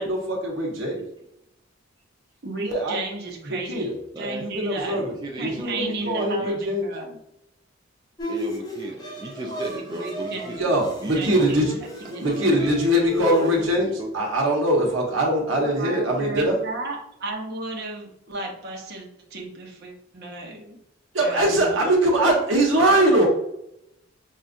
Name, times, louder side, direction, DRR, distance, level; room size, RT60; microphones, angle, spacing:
voice 1, 0.0-1.0 2.6-3.0 3.5-3.9 4.4-5.1 5.4-6.9 10.6-11.6 12.2-16.6 21.1-23.3, right 1 dB, 85° right, -1 dB, 1.1 m, -22 dB
voice 2, 2.4-5.0 5.4-7.2 9.4-10.7 11.1-12.5 15.5-20.8 21.2-21.8, right 2 dB, 55° right, 0 dB, 0.9 m, -34 dB
voice 3, 4.1-4.5 4.9-6.6 8.3-10.7 11.0-11.9 12.2-12.7 13.4-14.1, right 1 dB, 20° right, 0 dB, 0.4 m, -35 dB
Bowed string instrument, 8.2-13.6, right 1 dB, 20° left, 0.7 m, -34 dB
5.5 x 2.4 x 2.5 m, 0.80 s
head